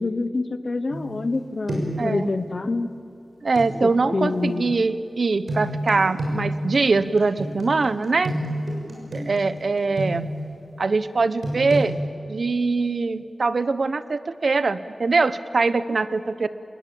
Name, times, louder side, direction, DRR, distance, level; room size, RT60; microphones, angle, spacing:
voice 1, 0.0-2.9 3.8-4.7, left 3 dB, 50° left, 12 dB, 1.1 m, -26 dB
sound 1, 0.9-1.4 1.7-2.1 3.6-3.7 5.5-10.5 11.4-11.9, right 1 dB, 85° right, 6.4 m, -29 dB
voice 2, 3.4-8.3 9.1-10.3 10.8-11.9 12.3-16.5, right 3 dB, 60° right, 14 dB, 0.9 m, -22 dB
27.0 x 20.5 x 8.6 m, 2.6 s
wide cardioid pair, 105°, 0 cm